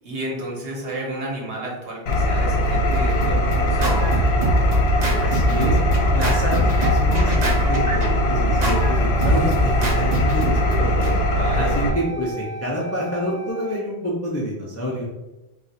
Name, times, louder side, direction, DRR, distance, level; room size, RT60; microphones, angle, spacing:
voice 1, 0.0-4.2 11.3-11.8, right 1 dB, 65° right, -2 dB, 1.1 m, -31 dB
Engine, 2.1-11.9, equal, 70° left, 0.8 m, -20 dB
Scratching (performance technique), 2.6-11.1, equal, 50° right, 0.6 m, -25 dB
voice 2, 5.2-5.8 6.1-8.0 8.3-11.2 11.6-15.1, equal, 20° left, -4 dB, 0.4 m, -27 dB
Wind instrument woodwind instrument, 7.9-13.8, right 2 dB, 40° left, 0.9 m, -37 dB
2.4 x 2.3 x 4.0 m, 1.0 s
omnidirectional pair, 1.1 m